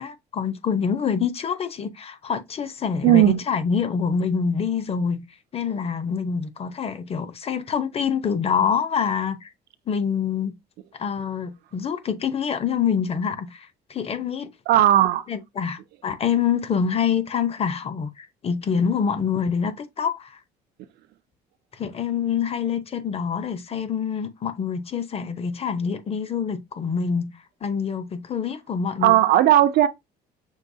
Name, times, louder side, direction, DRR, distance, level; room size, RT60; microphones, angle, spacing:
voice 1, 0.0-5.2 5.5-9.5 9.9-10.5 11.0-14.5 15.3-20.4 21.7-27.3 27.6-29.2, left 7 dB, 35° left, 0.8 m, -26 dB
voice 2, 3.0-3.4 14.7-15.2 29.0-29.9, right 13 dB, 70° right, 0.5 m, -16 dB
6.4 x 2.9 x 2.7 m
cardioid pair, 110°, 17 cm